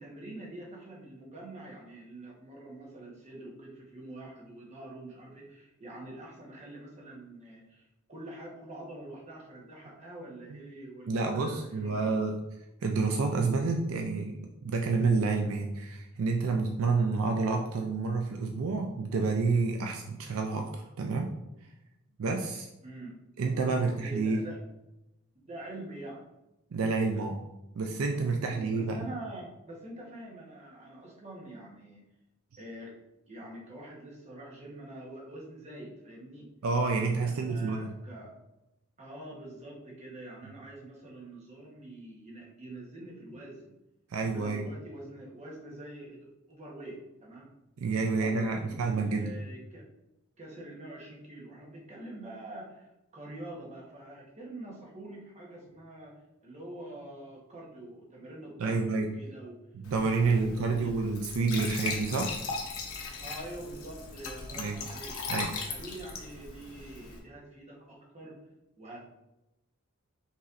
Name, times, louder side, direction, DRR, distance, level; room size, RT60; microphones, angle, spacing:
voice 1, 0.0-12.1 22.8-23.2 23.6-24.6 25.3-26.3 28.3-32.0 32.6-32.9 33.3-36.5 37.2-38.3 39.0-43.7 44.3-47.5 48.1-49.9 50.4-59.6 60.2-60.9 63.2-68.4 68.8-69.0, right 1 dB, 30° right, -3 dB, 1.1 m, -45 dB
voice 2, 11.1-12.4 12.8-14.4 14.6-21.3 22.2-22.7 23.4-24.4 26.7-27.4 27.8-29.0 36.6-37.9 44.1-44.7 47.8-49.3 58.6-59.1 59.8-62.3 64.5-64.8 65.3-65.5, right 4 dB, 70° right, 3 dB, 0.4 m, -29 dB
Glass / Trickle dribble / Fill (with liquid), 59.8-67.2, left 4 dB, 75° left, 0.8 m, -39 dB
5.4 x 3.1 x 2.5 m, 0.91 s
head